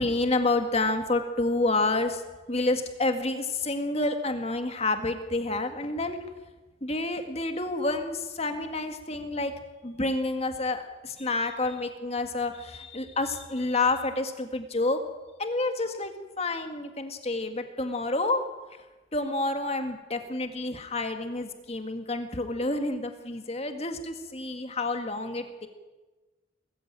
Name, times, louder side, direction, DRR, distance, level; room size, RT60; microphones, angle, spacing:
voice 1, 0.0-2.2 2.5-6.2 6.8-9.5 9.8-15.0 15.4-16.1 16.4-18.4 19.1-25.7, left 2 dB, 30° left, 6 dB, 1.9 m, -29 dB
19.5 x 15.0 x 9.0 m, 1.2 s
head